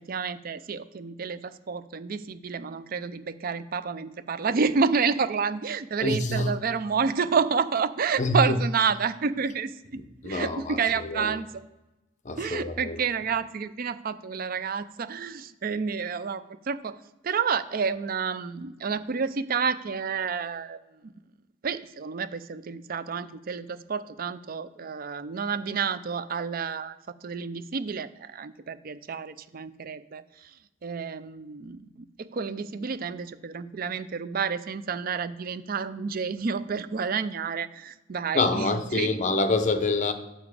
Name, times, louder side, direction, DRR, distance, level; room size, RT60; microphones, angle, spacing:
voice 1, 0.1-11.5 12.4-17.0 17.2-20.8 21.6-27.0 27.2-30.2 30.8-39.2, right 5 dB, 50° right, 0.5 m, -29 dB
voice 2, 6.0-6.5 8.2-8.6 10.2-11.4 12.2-13.0 38.3-40.1, left 2 dB, 40° left, 0.7 m, -26 dB
7.6 x 7.0 x 4.9 m
head